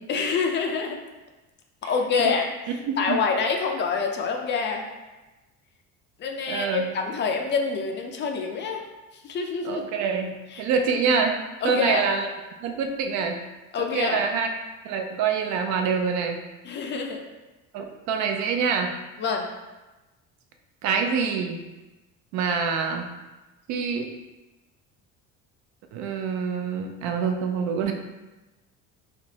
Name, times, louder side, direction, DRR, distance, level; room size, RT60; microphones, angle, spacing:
voice 1, 0.1-1.0 1.8-2.4 3.0-4.9 6.2-8.8 9.2-9.8 10.5-10.7 11.6-12.0 13.7-14.2 16.6-17.2 19.2-19.5, left 5 dB, 35° left, 2 dB, 0.4 m, -26 dB
voice 2, 2.9-3.2 6.5-6.9 9.6-10.3 10.6-11.4 11.6-12.3 12.6-13.4 13.9-14.5 14.8-16.4 17.7-18.9 20.8-21.6 22.3-23.1 23.7-24.1 25.9-27.9, right 5 dB, 65° right, 4 dB, 0.5 m, -25 dB
3.3 x 3.0 x 2.8 m, 1.1 s
cardioid pair, 130°, 31 cm